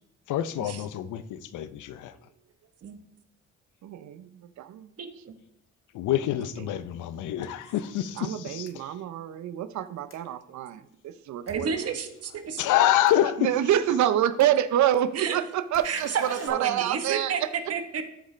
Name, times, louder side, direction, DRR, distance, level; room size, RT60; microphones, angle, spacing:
voice 1, 0.3-2.1 5.9-8.7 12.6-13.5, left 12 dB, 80° left, 14 dB, 0.6 m, -26 dB
voice 2, 3.8-4.9 6.6-6.7 8.2-11.9 13.4-17.5, right 11 dB, 70° right, 12 dB, 0.6 m, -27 dB
voice 3, 5.0-5.3 11.5-12.6 15.2-15.4 15.8-17.4 17.7-18.0, right 6 dB, 55° right, 6 dB, 1.1 m, -31 dB
sound 1, 8.6-8.7 10.1-10.2 11.5-11.6 13.1-13.2 14.4-14.5 15.7-16.5, left 5 dB, 45° left, 1.5 m, -46 dB
14.0 x 5.0 x 3.2 m, 0.78 s
cardioid pair, 90°, 30 cm